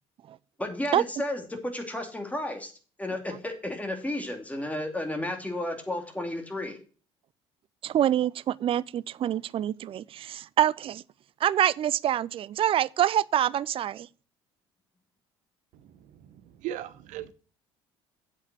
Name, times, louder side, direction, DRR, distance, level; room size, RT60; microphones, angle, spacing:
voice 1, 0.6-2.7 3.0-6.8, left 1 dB, 10° left, 2.7 m, -32 dB
voice 2, 7.8-11.0 11.4-14.1, right 11 dB, 40° right, 0.4 m, -26 dB
voice 3, 16.6-17.3, right 12 dB, 65° right, 1.0 m, -36 dB
8.1 x 5.6 x 7.5 m
hypercardioid pair, 60°, 14 cm